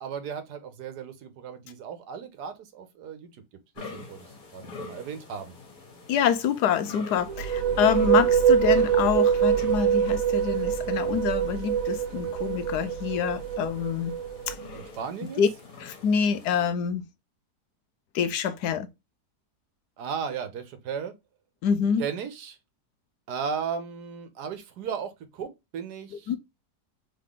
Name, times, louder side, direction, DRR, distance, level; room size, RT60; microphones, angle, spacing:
voice 1, 0.0-3.3 3.8-5.6 8.1-8.3 14.7-15.4 20.0-21.1 22.0-22.6 23.3-26.3, right 6 dB, 80° right, 1.4 m, -35 dB
sound 1, 3.8-16.7, left 3 dB, 60° left, 1.9 m, -46 dB
voice 2, 6.1-14.1 14.5-14.6 15.4-15.5 15.8-17.0 18.1-18.9 21.6-22.0 26.3-26.4, left 7 dB, 75° left, 1.2 m, -26 dB
sound 2, 7.2-14.8, right 8 dB, 65° right, 1.0 m, -24 dB
3.8 x 3.7 x 3.6 m
omnidirectional pair, 1.8 m